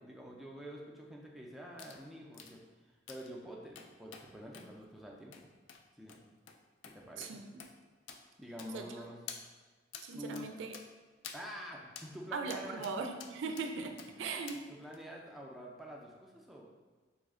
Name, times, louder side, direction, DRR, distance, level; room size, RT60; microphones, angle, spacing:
voice 1, 0.0-5.5 5.9-6.2 6.9-7.4 8.4-9.2 10.1-10.5 11.3-13.1 14.2-16.6, equal, ahead, -2 dB, 0.3 m, -47 dB
sound 1, 1.8-2.0 2.3-2.5 3.1-3.3 3.8-4.3 4.5-4.7 5.3-5.4 5.7-5.8 6.1-6.2 6.5-6.6 6.8-7.0 7.2-7.3 7.6-7.7 8.1-8.2 8.6-9.0 9.3-9.4 9.9-10.1 10.3-10.5 10.7-10.9 11.2-11.4 12.0-12.1 12.5-13.0 13.2-13.7 14.0-14.1 14.5-14.6 14.9-15.0, left 7 dB, 85° left, 0.3 m, -48 dB
voice 2, 7.2-7.5 8.7-8.9 10.0-10.8 12.3-14.6, right 4 dB, 90° right, 5 dB, 0.3 m, -39 dB
3.1 x 2.1 x 3.6 m, 1.4 s
head